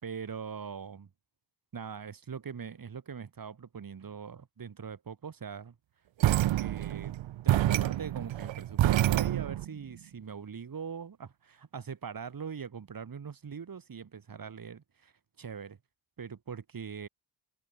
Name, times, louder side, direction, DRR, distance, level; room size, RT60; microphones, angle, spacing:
voice 1, 0.0-1.1 1.7-5.8 6.3-7.2 7.4-15.1 15.4-15.8 16.2-17.1, right 6 dB, 50° right, 6.0 m, -41 dB
sound 1, 6.2-9.7, right 14 dB, 85° right, 0.7 m, -27 dB
wide cardioid pair, 155°, 45 cm